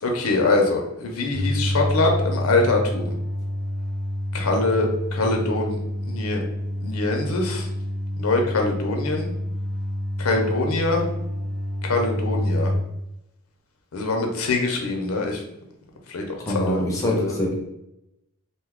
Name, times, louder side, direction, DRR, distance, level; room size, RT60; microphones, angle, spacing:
voice 1, 0.0-3.2 4.3-6.4 6.8-7.7 8.2-9.3 10.2-11.1 11.8-12.7 13.9-15.4 16.1-17.3, left 2 dB, 85° left, 2 dB, 0.6 m, -24 dB
sound 1, 1.3-12.8, left 1 dB, 85° right, 0.9 m, -28 dB
voice 2, 16.5-17.5, equal, 15° left, -2 dB, 0.6 m, -24 dB
2.6 x 2.3 x 3.5 m, 0.87 s
head